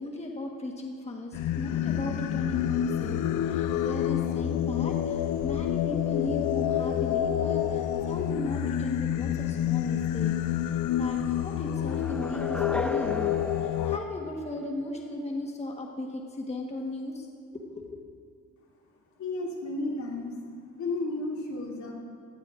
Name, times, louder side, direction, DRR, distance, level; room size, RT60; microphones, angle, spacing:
voice 1, 0.0-10.3 10.7-17.3 17.5-18.0, left 2 dB, 20° left, 0 dB, 1.3 m, -36 dB
Singing, 1.3-14.0, left 11 dB, 85° left, 0.6 m, -28 dB
sound 1, 11.9-15.0, left 1 dB, 5° left, 0.5 m, -37 dB
voice 2, 19.2-20.3 20.7-21.9, left 2 dB, 70° left, -4 dB, 3.1 m, -32 dB
17.0 x 15.5 x 2.5 m, 2.1 s
cardioid pair, 90°, 30 cm